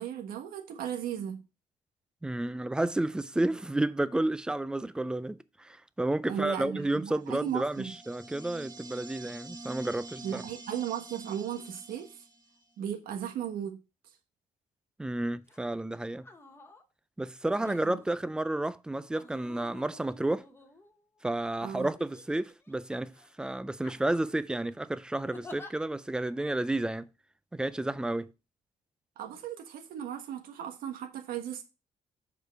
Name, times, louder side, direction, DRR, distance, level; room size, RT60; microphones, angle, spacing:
voice 1, 0.0-1.4 6.3-7.9 10.2-12.2 12.8-13.8 17.6-18.0 21.6-21.9 29.2-31.6, right 9 dB, 90° right, 1.4 m, -36 dB
voice 2, 2.2-10.4 15.0-16.2 17.2-20.5 21.2-27.1 27.5-28.3, right 1 dB, 5° right, 0.3 m, -31 dB
sound 1, 7.3-12.7, right 2 dB, 30° right, 0.9 m, -46 dB
sound 2, 15.5-15.7 16.2-16.8 17.6-18.2 19.1-21.2 22.0-22.7 23.1-23.3 23.8-24.4 25.3-25.7 26.5-26.6, left 3 dB, 15° left, 1.1 m, -50 dB
6.7 x 5.0 x 4.6 m
cardioid pair, 145°, 15 cm